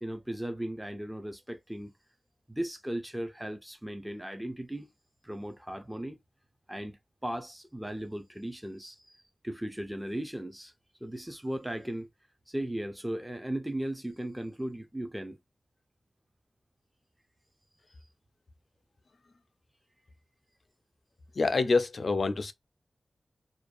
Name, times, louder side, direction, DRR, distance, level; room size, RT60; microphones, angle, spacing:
voice 1, 0.0-1.9 2.5-4.9 5.2-6.2 6.7-9.2 9.4-10.7 11.0-12.1 12.5-15.4, right 1 dB, 5° right, 0.4 m, -37 dB
voice 2, 21.4-22.5, left 3 dB, 60° left, 0.4 m, -26 dB
2.5 x 2.2 x 2.4 m
wide cardioid pair, 80°, 0 cm